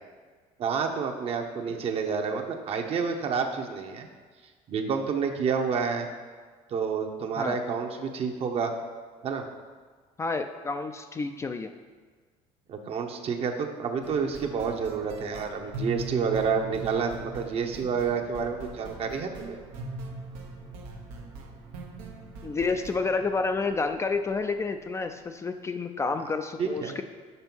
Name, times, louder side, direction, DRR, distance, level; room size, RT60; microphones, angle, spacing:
voice 1, 0.6-4.1 4.7-6.1 6.7-8.7 9.2-9.4 12.7-19.6 26.6-27.0, right 6 dB, 45° right, 4 dB, 0.9 m, -29 dB
voice 2, 10.2-11.7 22.4-27.0, left 4 dB, 20° left, 7 dB, 0.4 m, -29 dB
sound 1, 14.0-24.9, right 2 dB, 90° right, 1.0 m, -41 dB
5.5 x 5.0 x 6.1 m, 1.5 s
supercardioid pair, 100°, 13 cm